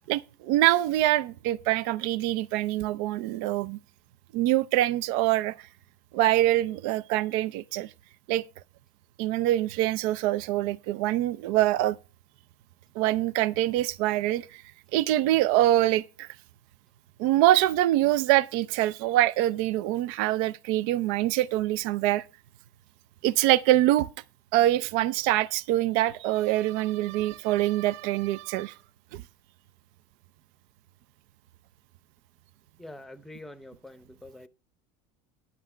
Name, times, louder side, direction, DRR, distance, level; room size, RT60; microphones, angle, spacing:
voice 1, 0.1-3.8 4.3-5.7 6.1-7.9 8.3-8.4 9.2-12.0 13.0-14.6 14.9-16.3 17.2-22.2 23.2-24.1 24.5-28.7 29.1-29.2, right 15 dB, 70° right, 0.5 m, -24 dB
voice 2, 32.8-34.5, left 1 dB, ahead, 0.7 m, -45 dB
10.5 x 6.0 x 5.5 m
cardioid pair, 140°, 11 cm